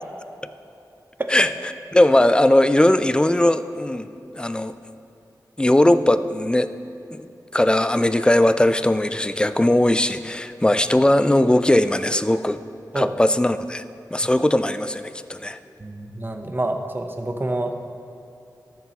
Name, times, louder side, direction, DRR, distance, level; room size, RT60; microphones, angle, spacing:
voice 1, 1.9-4.1 4.4-4.7 5.6-6.7 7.1-7.3 7.5-12.6 12.9-13.8 14.1-15.6, left 1 dB, 15° left, 12 dB, 0.3 m, -19 dB
voice 2, 15.8-17.8, right 2 dB, 30° right, 5 dB, 0.8 m, -27 dB
13.0 x 6.9 x 2.9 m, 2.8 s
wide cardioid pair, 65°, 7 cm